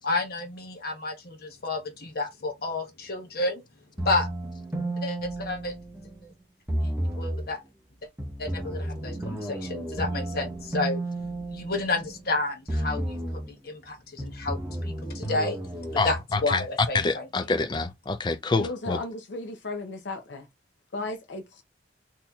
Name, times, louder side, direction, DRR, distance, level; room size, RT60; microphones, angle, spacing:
voice 1, 0.0-3.6 4.0-4.3 5.0-5.7 6.2-6.3 6.8-6.9 7.2-7.6 8.4-11.0 11.5-13.2 13.6-15.6 15.9-17.3, left 2 dB, 55° left, 0.9 m, -30 dB
sound 1, 4.0-6.2 6.7-7.5 8.2-12.3 12.7-13.5 14.2-16.0, right 1 dB, 10° right, 0.8 m, -32 dB
voice 2, 16.0-16.6 16.9-19.0, left 3 dB, 25° left, 0.4 m, -27 dB
voice 3, 18.6-20.5 20.9-21.6, left 2 dB, 75° left, 0.6 m, -35 dB
4.2 x 2.8 x 2.3 m
head